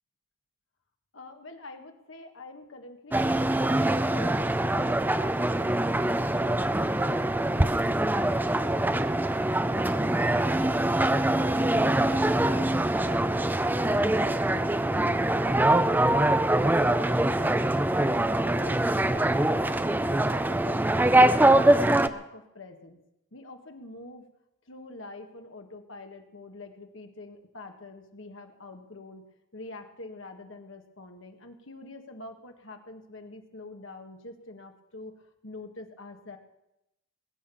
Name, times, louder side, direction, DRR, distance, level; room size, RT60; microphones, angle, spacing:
voice 1, 1.1-9.2 17.9-21.2 21.5-23.0 23.3-24.3 24.7-29.2 29.5-35.1 35.4-36.4, left 2 dB, 70° left, 4 dB, 1.8 m, -45 dB
sound 1, 3.1-22.1, right 1 dB, 10° right, 0.5 m, -24 dB
20.0 x 8.9 x 7.1 m, 0.88 s
head